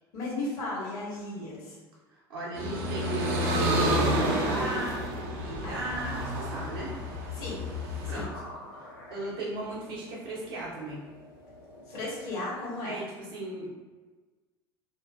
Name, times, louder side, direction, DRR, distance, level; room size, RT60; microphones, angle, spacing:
voice 1, 0.1-1.8 5.6-5.7 7.3-7.6 8.0-8.3 11.9-13.0, left 2 dB, 55° left, -5 dB, 1.2 m, -35 dB
voice 2, 2.1-6.9 8.1-8.3 9.1-11.0 12.8-13.7, right 1 dB, 70° right, -6 dB, 1.0 m, -36 dB
sound 1, 2.6-8.2, equal, 50° right, 0.6 m, -29 dB
sound 2, 4.2-5.3 5.7-5.8 7.3-8.1 8.4-8.5, left 1 dB, 20° left, 0.5 m, -48 dB
sound 3, 6.3-12.6, left 1 dB, 85° left, 1.0 m, -49 dB
3.0 x 2.6 x 2.4 m, 1.3 s
figure-of-eight pair, 70°, 13 cm